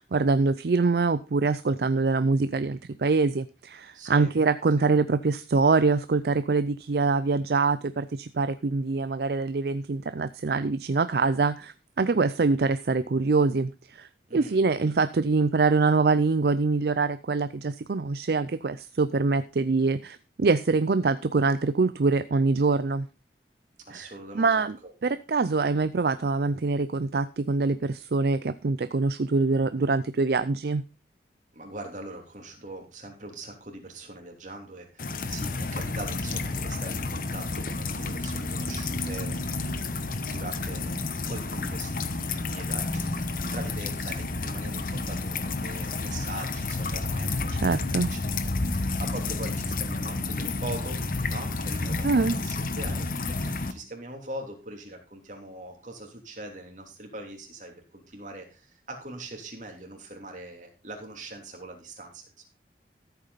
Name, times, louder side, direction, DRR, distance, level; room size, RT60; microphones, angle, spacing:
voice 1, 0.0-23.1 23.9-24.1 24.3-24.8 25.0-30.8 47.5-48.1 52.0-52.4, right 4 dB, 60° right, 14 dB, 0.5 m, -24 dB
voice 2, 3.9-4.3 14.3-14.6 23.9-24.9 31.5-39.4 40.2-47.8 48.1-62.4, right 2 dB, 45° right, 2 dB, 3.1 m, -42 dB
sound 1, 35.0-53.7, left 3 dB, 50° left, 1.0 m, -30 dB
14.0 x 8.2 x 4.1 m, 0.31 s
head